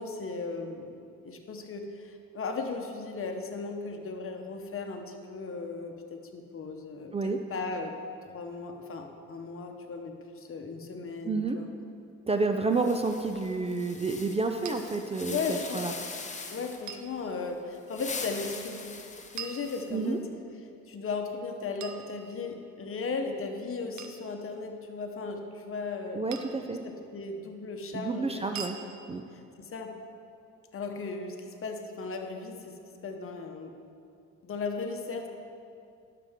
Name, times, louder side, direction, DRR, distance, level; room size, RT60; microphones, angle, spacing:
voice 1, 0.0-7.9 8.3-11.7 15.3-16.0 16.5-18.9 19.3-20.2 20.9-26.2 26.8-28.5 29.3-29.9 30.7-32.7 33.0-33.7 34.4-35.3, left 4 dB, 45° left, 4 dB, 1.0 m, -36 dB
voice 2, 11.2-11.6 12.3-15.9 19.9-20.2 26.1-26.8 27.9-28.8 29.1-29.2, right 3 dB, 20° right, 5 dB, 0.4 m, -29 dB
sound 1, 12.7-16.9 17.7-20.1, left 4 dB, 25° left, 0.8 m, -41 dB
sound 2, 14.7-14.8 16.9-17.1 19.4-20.3 21.8-22.7 24.0-24.3 26.3-26.7 28.6-28.8, right 7 dB, 70° right, 0.7 m, -42 dB
11.5 x 6.6 x 3.6 m, 2.5 s
cardioid pair, 90°, 30 cm